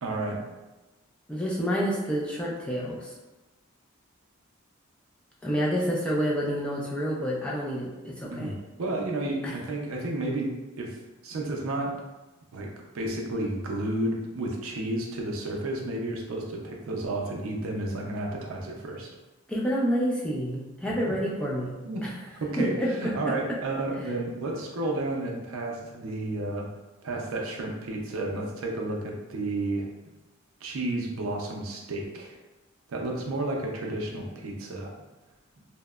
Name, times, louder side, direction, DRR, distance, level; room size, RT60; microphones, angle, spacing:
voice 1, 0.0-0.4 8.3-11.0 11.2-12.0 12.5-19.1 21.9-26.7 27.0-29.9 30.6-32.4 32.9-34.9, right 2 dB, 75° right, 0 dB, 0.5 m, -32 dB
voice 2, 1.3-3.1 5.4-8.5 9.4-9.5 19.5-21.8 22.6-22.9 23.2-23.3, equal, 5° left, -5 dB, 0.3 m, -28 dB
2.8 x 2.0 x 2.2 m, 1.1 s
head